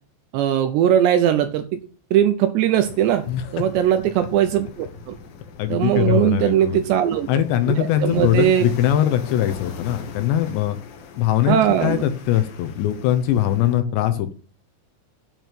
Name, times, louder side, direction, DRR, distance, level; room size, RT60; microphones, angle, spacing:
voice 1, 0.3-1.8 2.1-3.2 3.5-5.1 5.7-7.3 7.8-8.7 11.5-12.0, right 10 dB, 80° right, 9 dB, 2.6 m, -19 dB
sound 1, 2.7-13.8, left 5 dB, 60° left, 2.8 m, -41 dB
voice 2, 5.6-6.8 7.3-10.8 11.2-14.3, left 11 dB, 75° left, 9 dB, 2.8 m, -21 dB
9.0 x 6.0 x 8.3 m, 0.39 s
omnidirectional pair, 5.7 m